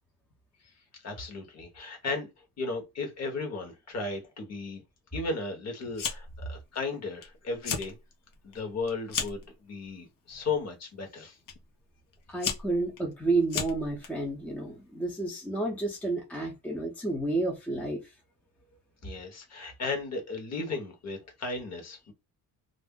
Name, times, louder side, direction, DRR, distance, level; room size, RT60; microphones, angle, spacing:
voice 1, 1.0-2.3 2.6-4.8 5.1-8.0 8.4-11.4 19.0-22.1, left 3 dB, 45° left, 1.1 m, -35 dB
Fire, 5.9-6.4 6.8-7.2 7.5-7.9 8.3-9.5 10.3-10.6 11.5-11.6 12.1-14.1, left 7 dB, 65° left, 0.8 m, -34 dB
voice 2, 12.3-18.0, right 2 dB, 5° left, 0.6 m, -30 dB
2.5 x 2.0 x 3.6 m
cardioid pair, 150°, 36 cm